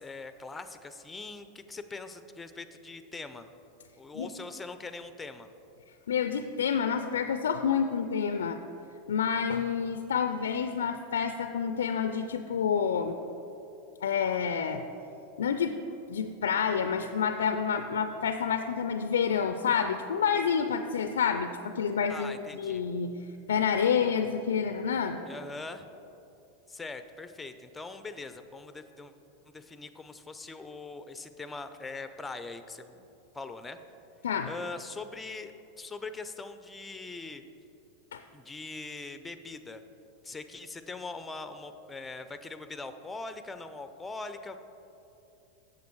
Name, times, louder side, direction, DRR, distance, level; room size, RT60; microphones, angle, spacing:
voice 1, 0.0-3.5 4.0-5.5 22.1-22.8 25.3-25.9 26.7-29.1 29.5-33.8 34.4-37.4 38.3-39.8 40.2-44.6, left 3 dB, 15° left, 10 dB, 0.5 m, -42 dB
voice 2, 6.1-8.6 9.1-13.2 14.0-14.8 15.4-15.8 16.1-23.1 23.5-25.2 34.2-34.5 38.1-38.2, left 7 dB, 80° left, 8 dB, 0.3 m, -28 dB
8.3 x 6.8 x 4.6 m, 2.9 s
hypercardioid pair, 95°, 0 cm